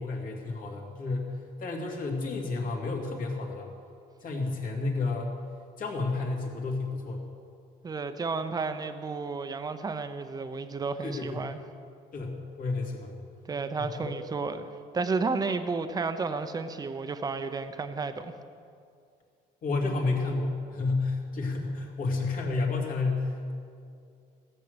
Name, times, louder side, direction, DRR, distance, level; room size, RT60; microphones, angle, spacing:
voice 1, 0.0-1.3 1.6-3.7 4.2-5.4 5.8-7.2 11.0-11.5 12.1-13.1 13.8-14.1 19.6-23.5, left 3 dB, 55° left, 1 dB, 2.5 m, -31 dB
voice 2, 7.8-11.6 13.5-14.7 14.9-18.3, right 4 dB, 20° right, 9 dB, 0.7 m, -32 dB
15.5 x 6.6 x 8.0 m, 2.4 s
cardioid pair, 110°, 17 cm